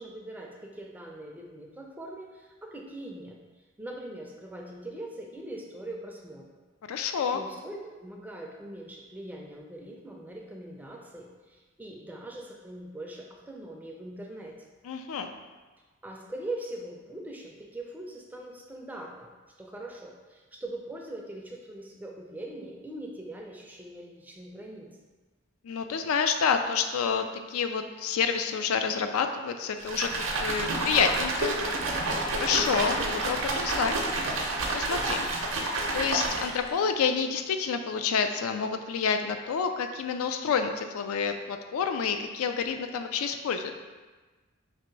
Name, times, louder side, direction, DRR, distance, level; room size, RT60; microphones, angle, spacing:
voice 1, 0.0-6.5 7.3-14.6 16.0-19.3 19.6-24.9, right 1 dB, 10° right, 0 dB, 0.3 m, -41 dB
voice 2, 6.9-7.4 14.8-15.3 25.6-31.6 32.3-34.0 34.7-35.3 35.9-43.7, left 6 dB, 90° left, 6 dB, 0.3 m, -28 dB
sound 1, 29.8-36.7, right 2 dB, 65° right, 0.6 m, -29 dB
3.0 x 2.8 x 4.4 m, 1.3 s
head